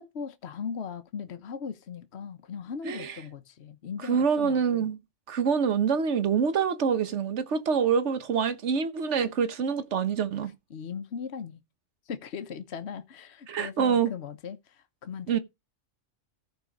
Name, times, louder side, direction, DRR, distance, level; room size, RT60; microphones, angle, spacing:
voice 1, 0.0-4.9 10.7-11.6 12.1-15.4, left 6 dB, 65° left, 1.2 m, -38 dB
voice 2, 4.1-5.0 5.3-10.5 13.5-14.1 15.3-15.4, right 6 dB, 70° right, 1.4 m, -26 dB
14.5 x 5.2 x 5.2 m
omnidirectional pair, 1.3 m